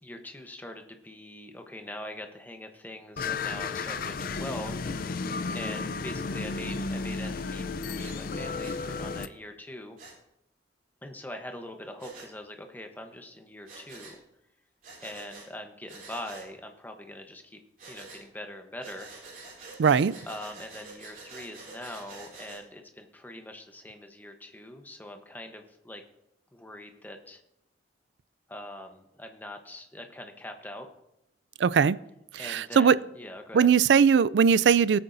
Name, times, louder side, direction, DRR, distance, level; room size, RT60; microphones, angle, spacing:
voice 1, 0.0-4.8 5.5-10.0 11.0-14.2 15.0-17.6 17.9-19.1 20.2-26.0 26.5-27.4 28.5-30.9 32.4-33.7, left 1 dB, 10° left, 5 dB, 1.0 m, -42 dB
sound 1, 3.2-9.3, left 4 dB, 55° left, 0.5 m, -33 dB
Breathing, 8.0-8.2 8.6-8.8 10.0-10.2 12.0-12.3 13.7-14.2 14.8-15.5 15.9-16.5 17.8-18.2 18.8-22.6, right 3 dB, 50° right, 3.5 m, -47 dB
voice 2, 19.8-20.2 31.6-32.0 32.5-33.0 33.5-35.0, right 6 dB, 75° right, 19 dB, 0.4 m, -20 dB
18.5 x 8.8 x 2.7 m, 0.86 s
head